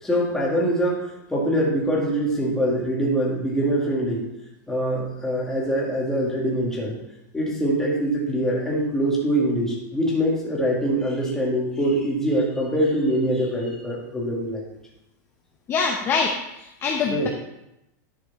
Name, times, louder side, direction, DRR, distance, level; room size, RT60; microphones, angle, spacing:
voice 1, 0.0-4.2 4.7-7.0 7.3-14.6 17.0-17.3, right 1 dB, 5° left, -4 dB, 2.1 m, -24 dB
voice 2, 15.7-17.3, left 5 dB, 25° left, 1 dB, 0.7 m, -24 dB
11.0 x 5.0 x 4.1 m, 0.88 s
supercardioid pair, 155°, 10 cm